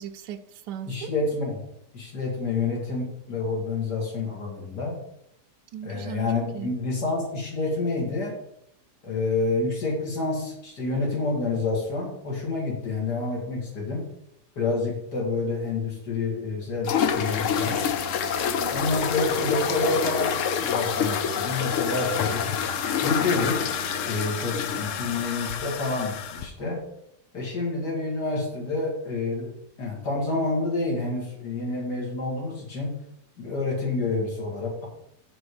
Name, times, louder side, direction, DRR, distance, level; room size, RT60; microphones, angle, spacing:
voice 1, 0.0-1.1 5.7-6.3 6.5-6.7 18.4-18.8, right 9 dB, 85° right, 7 dB, 1.2 m, -38 dB
voice 2, 0.9-1.6 1.9-5.0 5.8-8.4 9.0-14.0 14.6-17.8 18.7-22.4 23.0-23.7 24.0-26.8 27.3-29.5 29.8-32.9 33.4-34.9, left 3 dB, 80° left, -2 dB, 3.0 m, -28 dB
sound 1, 16.8-26.5, left 8 dB, 65° left, 0.8 m, -27 dB
sound 2, 17.0-25.2, right 4 dB, 65° right, 1.2 m, -41 dB
6.7 x 6.1 x 4.9 m, 0.78 s
omnidirectional pair, 1.8 m